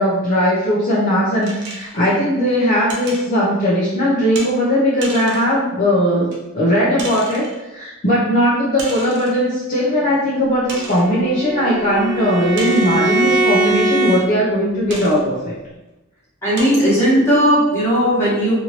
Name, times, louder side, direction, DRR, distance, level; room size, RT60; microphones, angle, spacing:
voice 1, 0.0-15.5, equal, 40° left, -8 dB, 0.6 m, -18 dB
sound 1, 1.4-2.1 2.9-3.3 4.3-4.5 5.0-5.6 6.3-6.4 7.0-7.6 8.8-9.4 9.9-10.0 10.7-11.1 12.6-13.2 14.9-15.2 15.9-16.0 16.6-16.9, right 2 dB, 60° right, 0.7 m, -33 dB
Bowed string instrument, 10.7-14.3, right 2 dB, 10° right, 1.0 m, -21 dB
voice 2, 16.4-18.5, equal, 15° left, -9 dB, 1.3 m, -16 dB
2.9 x 2.6 x 2.8 m, 1.0 s
head